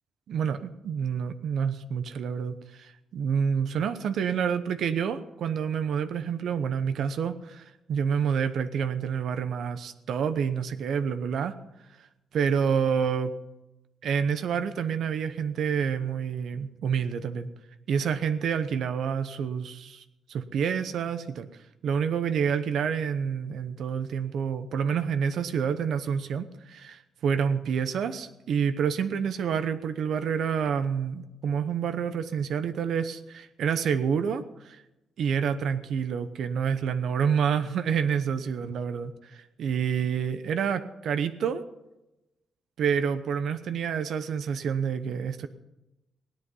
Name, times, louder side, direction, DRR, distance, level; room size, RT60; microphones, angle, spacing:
voice 1, 0.3-11.5 12.0-12.1 12.3-13.3 14.0-17.5 17.9-20.0 20.3-21.5 21.8-34.8 35.2-41.6 42.8-45.5, right 7 dB, 65° right, 10 dB, 0.9 m, -28 dB
17.5 x 10.5 x 5.5 m, 0.96 s
cardioid pair, 160°, 0 cm